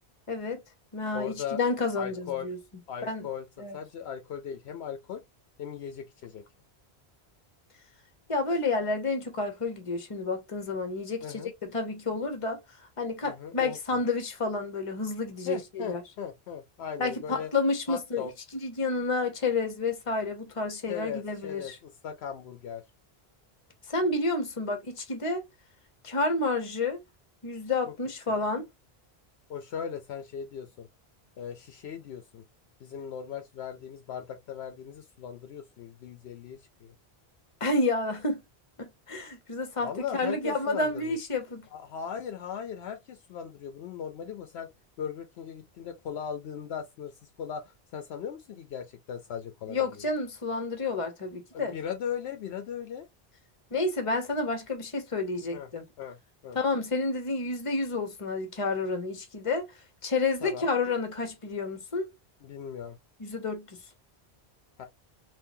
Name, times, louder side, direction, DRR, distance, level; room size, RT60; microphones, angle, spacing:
voice 1, 0.3-0.6 0.9-2.6 3.0-3.3 3.6-3.8 8.3-12.6 13.0-16.0 17.0-21.8 23.9-25.4 26.0-27.0 27.4-28.7 37.6-38.4 38.8-41.7 49.7-51.8 53.7-55.9 56.5-59.7 60.0-62.1 63.2-63.8, left 3 dB, 35° left, 0.9 m, -30 dB
voice 2, 1.1-1.6 2.0-2.5 2.9-3.5 3.7-5.2 5.6-6.4 11.2-11.5 13.2-13.8 15.5-17.5 17.9-18.3 20.9-22.8 29.5-30.9 31.4-32.4 32.8-36.9 39.8-41.2 41.7-44.7 45.0-47.1 47.4-50.0 51.5-53.1 55.5-55.7 56.0-56.2 56.4-56.6 60.4-60.7 62.4-63.0 64.8-64.9, left 8 dB, 80° left, 0.8 m, -38 dB
3.7 x 2.5 x 2.6 m
omnidirectional pair, 1.1 m